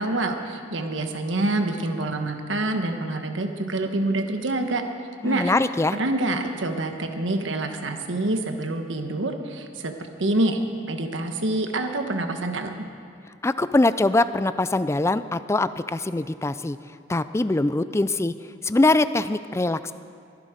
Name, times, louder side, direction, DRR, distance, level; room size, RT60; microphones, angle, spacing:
voice 1, 0.0-4.8 5.2-5.5 5.9-9.9 10.2-10.6 10.9-12.7, right 2 dB, 85° right, 5 dB, 1.4 m, -26 dB
voice 2, 5.2-6.0 13.4-16.8 17.1-18.3 18.6-19.9, left 2 dB, 15° left, 13 dB, 0.4 m, -22 dB
23.0 x 11.5 x 5.1 m, 2.3 s
head